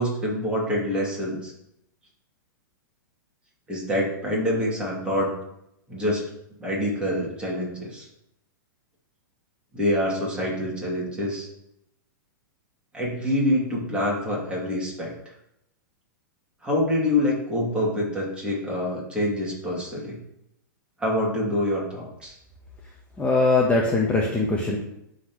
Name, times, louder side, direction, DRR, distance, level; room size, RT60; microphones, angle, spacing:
voice 1, 0.0-1.5 3.7-5.3 5.9-6.2 6.6-8.1 9.7-11.5 12.9-15.1 16.6-20.2 21.0-22.4, left 1 dB, 10° right, -4 dB, 2.7 m, -26 dB
voice 2, 23.2-24.8, left 3 dB, 15° left, -2 dB, 1.1 m, -21 dB
11.5 x 4.1 x 3.2 m, 0.79 s
hypercardioid pair, 125°, 11 cm